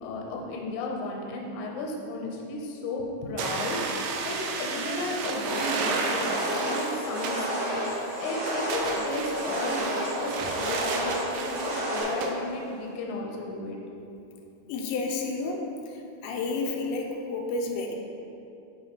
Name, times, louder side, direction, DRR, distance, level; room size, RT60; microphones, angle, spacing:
voice 1, 0.0-3.8 4.2-7.8 8.1-13.8, left 2 dB, 70° left, -1 dB, 1.8 m, -34 dB
sound 1, 3.4-12.4, right 4 dB, 80° right, 2.0 m, -33 dB
sound 2, 5.4-12.0, right 1 dB, 55° right, 2.5 m, -31 dB
voice 2, 14.7-15.7 16.2-17.9, left 3 dB, 90° left, 1 dB, 2.5 m, -30 dB
9.1 x 4.7 x 3.0 m, 2.8 s
omnidirectional pair, 4.3 m